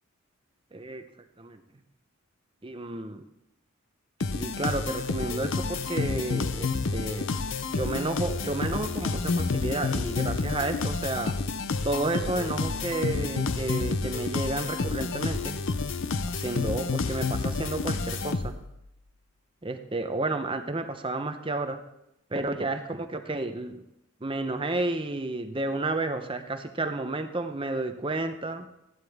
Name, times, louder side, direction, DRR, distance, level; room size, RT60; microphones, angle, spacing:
voice 1, 0.7-1.1 1.4-1.6 2.6-3.2 4.3-7.3 7.7-11.4 11.8-15.6 16.3-18.6 19.6-21.8 22.3-23.8 24.2-28.7, right 2 dB, 25° right, 7 dB, 0.7 m, -31 dB
sound 1, 4.2-18.8, left 4 dB, 55° left, 0.6 m, -29 dB
14.0 x 11.0 x 3.6 m, 0.86 s
head